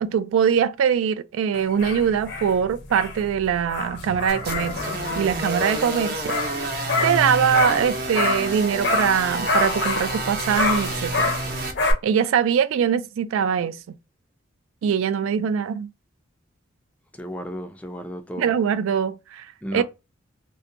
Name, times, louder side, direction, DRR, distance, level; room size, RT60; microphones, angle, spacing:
voice 1, 0.0-6.4 7.0-11.3 12.0-13.8 14.8-15.9 18.4-19.4 19.7-19.8, right 7 dB, 85° right, 0.3 m, -22 dB
sound 1, 1.5-8.6 8.8-11.9, left 3 dB, 60° left, 0.6 m, -27 dB
sound 2, 4.3-11.7, right 2 dB, 50° right, 0.7 m, -30 dB
voice 2, 17.2-18.5 19.6-19.8, equal, 5° left, 0.3 m, -33 dB
2.7 x 2.1 x 2.5 m
head